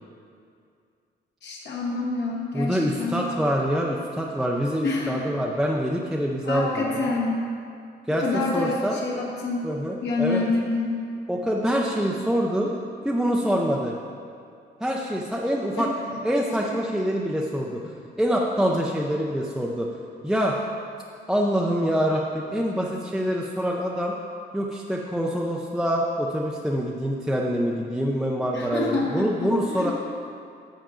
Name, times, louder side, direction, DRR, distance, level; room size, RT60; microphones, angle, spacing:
voice 1, 1.4-3.2 4.8-5.3 6.4-7.5 8.1-9.6 10.0-11.0 15.8-15.9 16.7-16.8 28.5-29.9, left 3 dB, 70° left, -3 dB, 1.4 m, -27 dB
voice 2, 2.5-7.1 8.1-9.0 9.6-10.4 11.3-12.7 13.0-13.9 14.8-15.9 16.2-19.9 20.2-20.6 21.3-24.2 24.5-29.9, equal, 5° right, -2 dB, 0.4 m, -25 dB
10.0 x 7.4 x 3.8 m, 2.3 s
wide cardioid pair, 170°, 19 cm